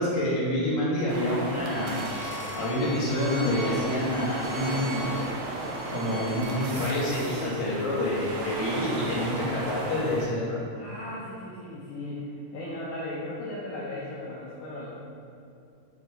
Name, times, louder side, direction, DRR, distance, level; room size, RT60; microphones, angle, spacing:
voice 1, 0.0-2.3 2.5-5.1 5.9-10.6, left 1 dB, 50° left, -8 dB, 2.3 m, -28 dB
sound 1, 1.1-10.3, right 2 dB, 70° right, 2.2 m, -35 dB
Bowed string instrument, 1.7-7.1, left 1 dB, 45° right, 1.7 m, -42 dB
sound 2, 1.7-2.9 3.5-3.6 5.2-5.5 5.9-7.5 7.9-8.0, right 4 dB, 85° right, 2.5 m, -43 dB
voice 2, 10.7-14.9, left 1 dB, 75° left, -6 dB, 2.1 m, -37 dB
7.8 x 3.8 x 4.1 m, 2.6 s
omnidirectional pair, 3.9 m